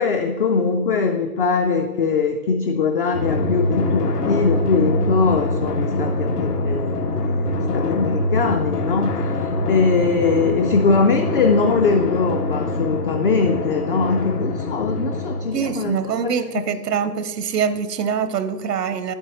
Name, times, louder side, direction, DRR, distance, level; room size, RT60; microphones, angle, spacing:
voice 1, 0.0-9.2 9.7-16.3, left 4 dB, 40° left, 5 dB, 0.4 m, -21 dB
Drum, 3.1-16.2, left 2 dB, 75° left, 1.2 m, -24 dB
voice 2, 15.5-19.1, right 7 dB, 75° right, 12 dB, 0.8 m, -24 dB
9.5 x 7.8 x 3.0 m, 1.4 s
hypercardioid pair, 140°, 48 cm